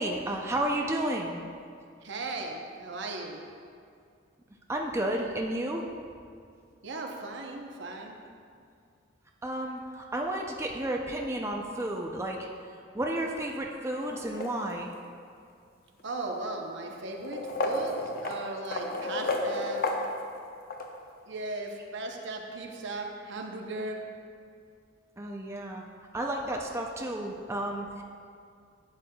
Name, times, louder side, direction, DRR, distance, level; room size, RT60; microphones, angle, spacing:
voice 1, 0.0-1.4 4.7-5.9 9.4-12.5 12.9-14.9 25.2-25.8 26.1-28.0, right 1 dB, 15° right, 0 dB, 0.4 m, -32 dB
voice 2, 2.0-3.4 6.8-8.2 16.0-17.9 18.2-19.8 21.3-24.0, right 2 dB, 65° right, 2 dB, 0.8 m, -37 dB
sound 1, 14.0-15.0 16.0-16.1 17.1-20.9, left 2 dB, 50° left, 0.7 m, -32 dB
11.5 x 8.1 x 2.3 m, 2.3 s
head